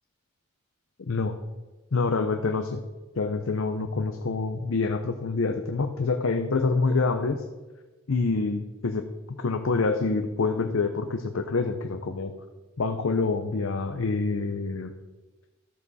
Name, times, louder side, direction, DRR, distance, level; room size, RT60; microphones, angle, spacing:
voice 1, 1.9-2.8 3.2-7.4 8.1-12.3 12.8-14.9, left 4 dB, 65° left, 6 dB, 0.6 m, -26 dB
13.5 x 6.9 x 4.1 m, 1.2 s
head